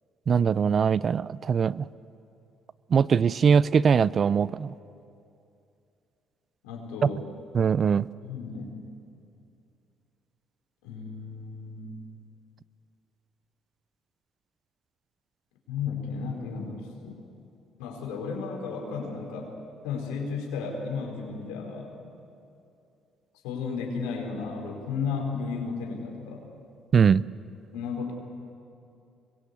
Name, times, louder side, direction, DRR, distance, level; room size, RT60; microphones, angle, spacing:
voice 1, 0.3-1.9 2.9-4.7 7.0-7.1 7.5-8.1 26.9-27.2, right 6 dB, 50° right, 19 dB, 0.5 m, -21 dB
voice 2, 6.6-7.3 8.2-8.8 10.8-12.0 15.7-17.2 17.8-19.5 19.8-21.9 23.4-26.5 27.7-28.1, left 5 dB, 90° left, 1 dB, 4.8 m, -34 dB
26.0 x 22.0 x 8.4 m, 2.6 s
supercardioid pair, 65°, 0 cm